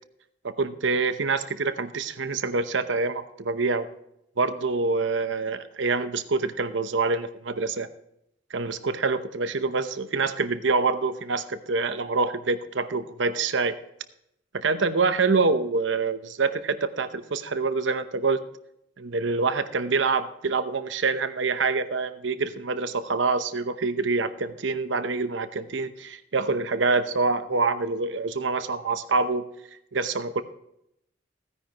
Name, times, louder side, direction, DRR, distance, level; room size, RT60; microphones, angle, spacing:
voice 1, 0.4-3.9 4.4-7.9 8.5-13.8 14.5-18.4 19.0-29.4 29.9-30.4, right 4 dB, 75° right, 11 dB, 0.8 m, -26 dB
15.5 x 9.9 x 3.0 m, 0.78 s
head